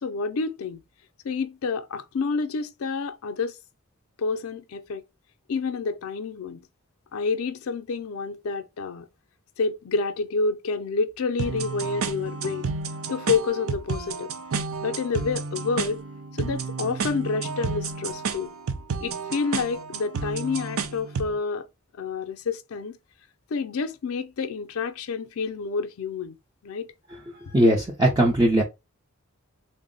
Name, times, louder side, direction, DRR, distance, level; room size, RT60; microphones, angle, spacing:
voice 1, 0.0-0.8 1.2-3.6 4.2-5.0 5.5-6.6 7.1-9.1 9.6-12.7 13.1-14.3 14.8-16.0 16.4-18.5 19.0-21.7 22.0-23.0 23.5-26.4 26.6-26.9, left 4 dB, 85° left, 0.4 m, -28 dB
sound 1, 11.4-21.4, right 5 dB, 75° right, 0.5 m, -31 dB
voice 2, 27.5-28.6, right 1 dB, 20° right, 0.5 m, -19 dB
3.5 x 2.1 x 3.7 m
head